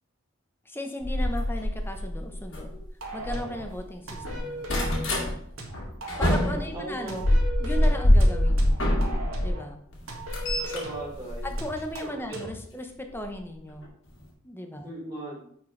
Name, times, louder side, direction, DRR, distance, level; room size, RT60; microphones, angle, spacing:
voice 1, 0.7-2.7 3.1-4.6 6.2-7.2 7.6-8.8 9.4-9.8 11.4-13.9 14.4-14.9, left 1 dB, 10° left, 5 dB, 0.8 m, -36 dB
sound 1, 1.0-3.8 4.1-5.3 5.7-9.5 9.9-12.1 13.2-13.4 13.8-13.9 14.1-14.2, left 1 dB, 65° left, 2.0 m, -25 dB
sound 2, 3.0-3.7 4.1-5.1 5.6-6.7 7.1-9.7 10.1-11.1 11.6-12.6, right 1 dB, 80° right, 1.7 m, -38 dB
voice 2, 6.3-7.4 10.6-11.5 12.3-12.5 14.8-15.4, right 2 dB, 20° right, -5 dB, 3.2 m, -38 dB
9.5 x 4.4 x 3.3 m, 0.64 s
head